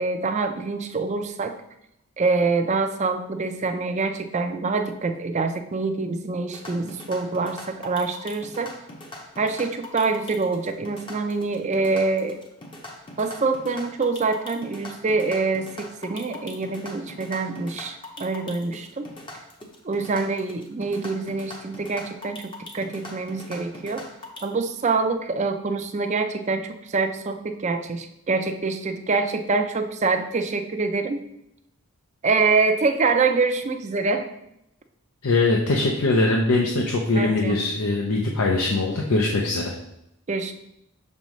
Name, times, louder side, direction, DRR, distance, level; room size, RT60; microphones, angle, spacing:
voice 1, 0.0-1.6 2.2-8.7 9.4-12.4 13.2-19.1 19.8-24.0 24.4-31.2 32.2-34.3 37.1-37.6 40.3-40.5, right 4 dB, 30° right, 7 dB, 0.4 m, -25 dB
sound 1, 6.5-24.4, left 2 dB, 25° left, 0.7 m, -41 dB
voice 2, 35.2-39.7, left 2 dB, 80° left, 0 dB, 0.7 m, -22 dB
6.3 x 5.4 x 3.1 m, 0.81 s
head